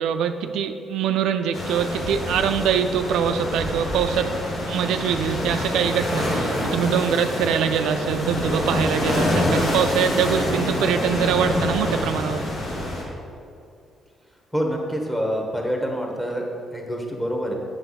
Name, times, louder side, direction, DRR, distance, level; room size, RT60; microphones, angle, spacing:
voice 1, 0.0-4.3 4.6-12.4, right 7 dB, 85° right, 7 dB, 0.3 m, -23 dB
sound 1, 1.5-13.0, left 1 dB, 65° left, 1.8 m, -26 dB
voice 2, 14.5-16.5 16.7-17.5, equal, 5° left, 0 dB, 1.2 m, -26 dB
6.8 x 5.5 x 4.0 m, 2.5 s
cardioid pair, 90°, 0 cm